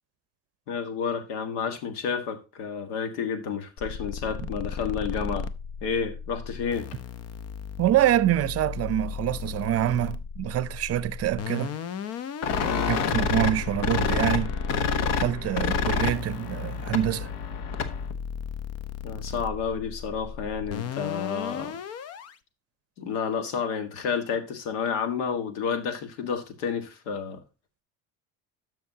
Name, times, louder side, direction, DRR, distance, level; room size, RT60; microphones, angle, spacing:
voice 1, 0.7-5.5 5.8-6.9 12.6-12.9 19.0-21.8 23.0-27.4, left 6 dB, 90° left, 1.7 m, -30 dB
sound 1, 3.8-22.4, left 6 dB, 45° left, 0.8 m, -36 dB
voice 2, 7.8-11.7 12.7-14.5 15.2-17.3, right 12 dB, 45° right, 0.7 m, -26 dB
sound 2, 12.4-18.1, left 6 dB, 75° left, 1.3 m, -28 dB
12.5 x 5.9 x 2.8 m
supercardioid pair, 100°, 34 cm